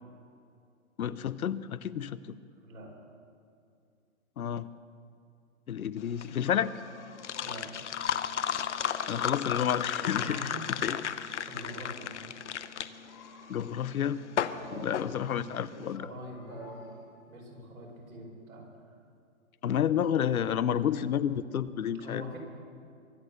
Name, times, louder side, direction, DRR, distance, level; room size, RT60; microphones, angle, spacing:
voice 1, 1.0-2.2 4.4-4.7 5.7-6.7 9.1-10.5 10.8-11.0 13.5-14.2 14.7-16.1 19.6-22.2, left 9 dB, 85° left, 16 dB, 0.8 m, -30 dB
sound 1, 6.0-15.9, left 8 dB, 55° left, 0.7 m, -34 dB
sound 2, 6.4-7.8 8.1-9.2 9.5-11.1 13.0-14.1 15.7-17.2, left 4 dB, 15° left, 1.0 m, -54 dB
voice 2, 7.4-8.0 10.2-11.0 11.4-12.2 14.5-17.0 17.3-18.7 22.0-22.4, equal, 75° right, 0 dB, 5.0 m, -44 dB
23.0 x 8.5 x 6.9 m, 2.4 s
hypercardioid pair, 175°, 42 cm